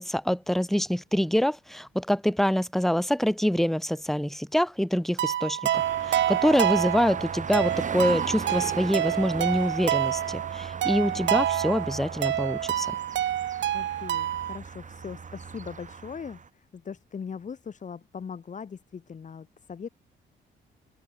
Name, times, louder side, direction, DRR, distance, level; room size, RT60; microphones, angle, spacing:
voice 1, 0.0-12.9, equal, ahead, 2.0 m, -26 dB
sound 1, 5.2-14.6, right 12 dB, 70° right, 1.2 m, -28 dB
sound 2, 5.7-16.5, right 5 dB, 40° right, 5.8 m, -38 dB
voice 2, 10.9-11.5 13.7-19.9, left 6 dB, 40° left, 1.6 m, -40 dB
open air
cardioid pair, 90°, 20 cm